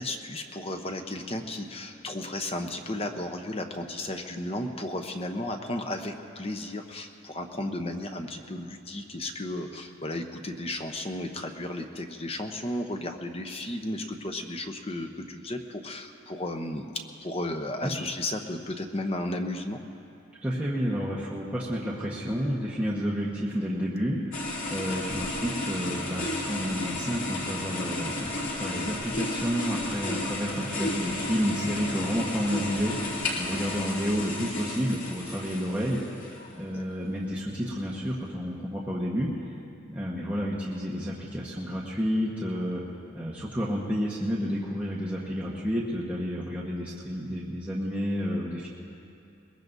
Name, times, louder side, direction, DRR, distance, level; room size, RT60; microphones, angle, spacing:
voice 1, 0.0-19.8 33.5-33.7 36.7-36.8, left 1 dB, 30° left, 4 dB, 0.8 m, -34 dB
voice 2, 20.4-36.0 36.5-39.6 39.9-42.8 43.1-48.7, equal, 5° right, -7 dB, 1.3 m, -30 dB
sound 1, 24.3-36.6, left 2 dB, 85° left, 3.0 m, -33 dB
22.0 x 21.0 x 2.7 m, 2.6 s
head